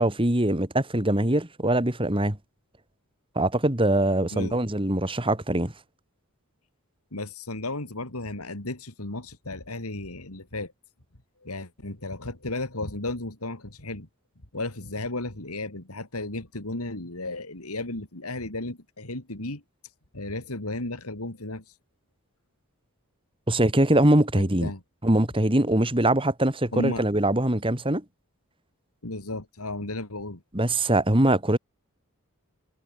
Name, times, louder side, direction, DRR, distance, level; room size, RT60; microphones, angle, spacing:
voice 1, 0.0-2.4 3.4-5.7 23.5-24.7 25.0-28.0 30.5-31.6, right 1 dB, 25° right, 2.4 m, -22 dB
voice 2, 7.1-10.7 11.4-14.1 14.5-19.6 20.1-21.8 24.4-24.8 26.7-27.1 29.0-30.4, left 2 dB, 80° left, 3.5 m, -34 dB
head